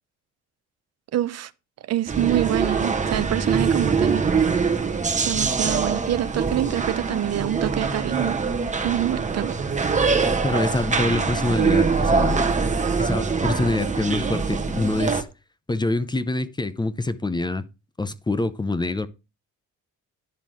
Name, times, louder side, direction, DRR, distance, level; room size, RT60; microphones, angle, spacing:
voice 1, 1.1-1.5 1.8-4.3 5.2-8.4 8.8-9.6, right 12 dB, 55° right, 0.5 m, -26 dB
sound 1, 2.1-15.2, right 5 dB, 25° right, 1.1 m, -23 dB
voice 2, 10.4-12.5 13.0-15.3 15.7-17.7 18.0-19.1, left 2 dB, 15° left, 0.6 m, -25 dB
10.5 x 3.7 x 6.0 m
cardioid pair, 90°, 30 cm